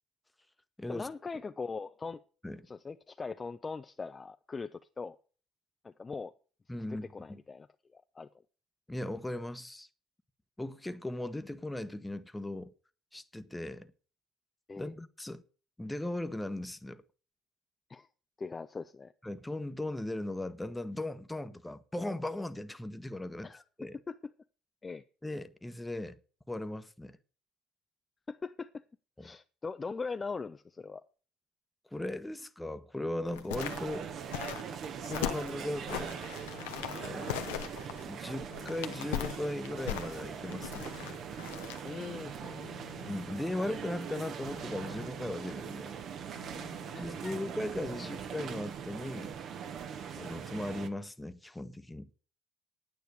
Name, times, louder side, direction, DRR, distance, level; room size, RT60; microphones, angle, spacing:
voice 1, 0.9-2.2 2.7-5.2 5.8-6.3 6.9-7.7 7.9-8.3 14.7-14.9 17.9-18.1 18.4-19.1 23.4-23.6 24.1-24.2 24.8-25.0 28.3-28.7 29.2-31.0 41.8-42.7 46.9-47.4 48.0-48.1, left 4 dB, 25° left, 0.5 m, -41 dB
voice 2, 6.7-7.4 8.9-9.9 10.6-12.7 13.1-13.9 14.8-15.4 15.8-17.0 19.2-23.5 23.8-24.0 25.2-26.2 26.5-27.2 29.2-29.3 31.9-34.1 34.8-36.2 37.0-40.9 43.1-45.9 47.0-49.4 50.1-52.1, left 1 dB, 10° left, 1.1 m, -38 dB
sound 1, 33.3-42.1 42.5-42.6, left 12 dB, 90° left, 0.9 m, -39 dB
sound 2, 33.5-50.9, right 7 dB, 55° right, 1.3 m, -41 dB
sound 3, 35.8-37.5 37.8-39.4 39.8-41.4 41.7-43.3 43.7-45.3 45.7-47.2 47.7-47.8 48.0-48.1 48.3-49.2 49.5-49.6, left 13 dB, 70° left, 1.2 m, -55 dB
9.4 x 9.1 x 6.7 m
supercardioid pair, 75°, 0 cm